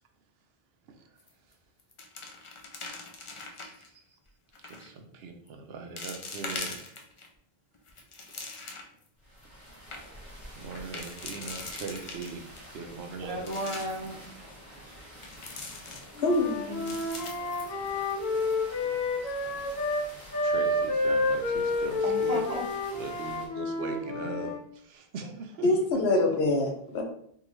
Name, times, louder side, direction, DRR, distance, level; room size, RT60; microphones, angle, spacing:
sound 1, 1.2-1.5 1.8-3.9 4.5-4.9 5.5-5.6 6.0-7.3 7.7-9.0 9.4-9.5 9.7-10.0 10.7-12.6 13.1-14.1 15.2-16.4 16.7-18.2 18.5-18.6 19.1-19.4, left 3 dB, 45° left, 0.4 m, -41 dB
voice 1, 4.6-6.8 10.5-12.4 12.7-13.4 19.2-19.3 20.4-22.4 23.0-25.7, right 4 dB, 75° right, 4 dB, 0.8 m, -40 dB
sound 2, 9.2-23.5, equal, 15° left, 1.2 m, -49 dB
voice 2, 13.2-14.8 15.2-15.3 17.7-18.0 18.8-19.0 19.4-19.7 22.0-22.6, right 1 dB, 40° right, 0 dB, 0.7 m, -36 dB
voice 3, 16.2-17.0 25.6-27.0, left 2 dB, 85° left, 2 dB, 1.0 m, -25 dB
Wind instrument woodwind instrument, 16.2-20.1 20.3-24.6, left 2 dB, 70° left, 1.1 m, -29 dB
3.6 x 2.4 x 3.0 m, 0.65 s
omnidirectional pair, 1.1 m